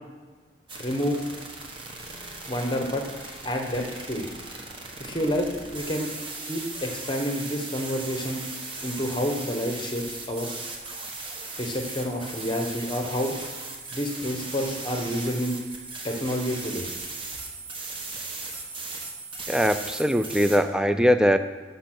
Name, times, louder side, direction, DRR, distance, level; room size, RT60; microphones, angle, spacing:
sound 1, 0.7-20.6, right 3 dB, 25° right, 1.1 m, -38 dB
voice 1, 0.8-1.2 2.5-3.0 3.4-4.2 5.0-6.1 6.5-8.4 8.8-10.5 11.6-13.3 13.9-15.6 16.0-16.9, equal, 25° left, 3 dB, 1.0 m, -29 dB
voice 2, 19.5-21.4, equal, 5° right, 9 dB, 0.3 m, -21 dB
12.5 x 5.5 x 6.0 m, 1.5 s
head